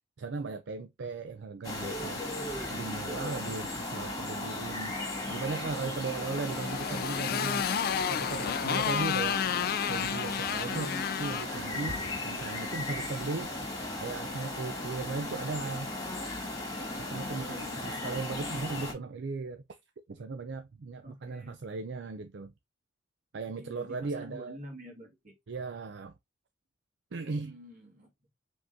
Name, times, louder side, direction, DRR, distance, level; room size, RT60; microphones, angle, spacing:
voice 1, 0.2-2.2 2.7-5.0 5.3-7.7 8.1-9.4 9.9-13.5 14.0-15.9 17.0-19.8 20.1-22.5 23.3-24.6 25.5-26.1 27.1-27.6, right 4 dB, 65° right, 0.5 m, -37 dB
sound 1, 1.6-18.9, left 2 dB, 20° left, 1.8 m, -36 dB
Motorcycle, 6.1-12.6, left 8 dB, 55° left, 0.4 m, -32 dB
voice 2, 10.7-11.2 17.3-17.9 21.0-21.6 23.6-25.4 27.4-28.1, equal, 45° right, 2.0 m, -47 dB
5.2 x 3.7 x 2.5 m
head